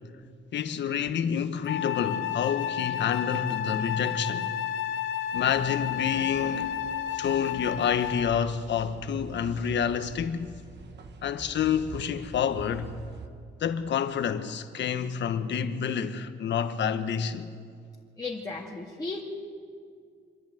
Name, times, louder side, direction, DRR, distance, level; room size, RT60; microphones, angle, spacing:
voice 1, 0.5-4.5 5.3-6.7 7.1-10.5 11.2-12.9 13.6-17.5, left 8 dB, 65° left, 1.3 m, -28 dB
Wind instrument woodwind instrument, 1.7-8.4, left 9 dB, 90° left, 0.8 m, -31 dB
sound 1, 5.3-13.3, right 4 dB, 60° right, 1.7 m, -46 dB
voice 2, 18.2-19.2, left 3 dB, 20° left, 2.2 m, -35 dB
26.0 x 10.5 x 9.5 m
cardioid pair, 90°, 20 cm